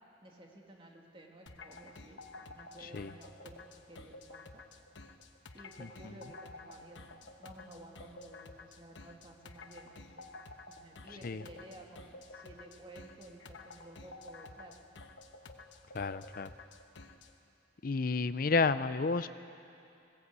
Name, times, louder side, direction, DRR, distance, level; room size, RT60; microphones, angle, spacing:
voice 1, 0.2-3.6 3.9-4.6 5.5-10.3 10.7-14.7, right 1 dB, 30° right, 0 dB, 2.3 m, -54 dB
sound 1, 1.5-17.3, left 3 dB, 90° left, 1.2 m, -52 dB
voice 2, 15.9-16.5 17.8-19.3, left 4 dB, 50° left, 13 dB, 0.6 m, -31 dB
20.5 x 17.5 x 8.3 m, 2.7 s
head